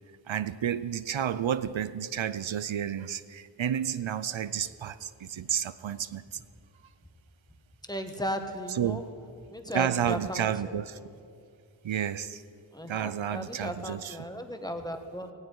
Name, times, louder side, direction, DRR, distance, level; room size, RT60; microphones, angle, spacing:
voice 1, 0.3-6.4 8.7-9.1 9.7-11.0 11.8-12.4 12.9-14.2, right 9 dB, 80° right, 0.5 m, -31 dB
voice 2, 7.9-9.0 9.5-10.7 12.7-15.3, equal, 10° left, 1.3 m, -36 dB
18.0 x 16.0 x 4.7 m
wide cardioid pair, 60°, 46 cm